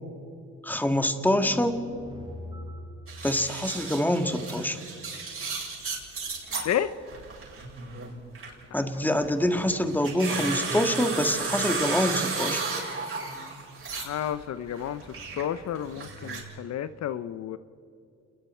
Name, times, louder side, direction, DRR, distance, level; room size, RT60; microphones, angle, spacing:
voice 1, 0.6-1.8 3.2-4.8 8.7-12.6, left 1 dB, 5° left, 7 dB, 1.9 m, -25 dB
sound 1, 1.2-3.1, left 1 dB, 15° right, 5.8 m, -40 dB
sound 2, 3.1-6.7 7.1-8.6 9.1-14.3 14.6-16.4, right 4 dB, 45° right, 7.4 m, -33 dB
voice 2, 13.9-15.0 15.4-17.6, left 10 dB, 60° left, 13 dB, 0.7 m, -31 dB
28.5 x 21.5 x 4.5 m, 2.5 s
cardioid pair, 90°, 30 cm